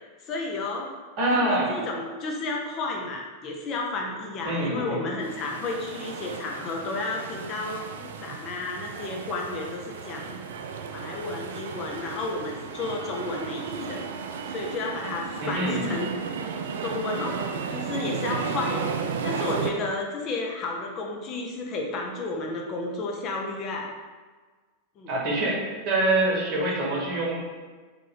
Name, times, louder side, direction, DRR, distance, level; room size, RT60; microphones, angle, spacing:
voice 1, 0.2-0.9 1.3-10.4 10.9-14.0 14.5-16.1 16.8-17.4 17.7-18.9 19.2-23.9 25.0-25.1 26.5-26.7, left 3 dB, 35° left, 0 dB, 0.6 m, -32 dB
voice 2, 1.2-1.8 4.4-5.0 15.4-15.9 25.1-27.4, right 2 dB, 40° right, -3 dB, 1.1 m, -25 dB
sound 1, 5.2-19.7, right 6 dB, 60° right, 0.3 m, -34 dB
3.6 x 2.9 x 3.9 m, 1.4 s
figure-of-eight pair, 90°, 0 cm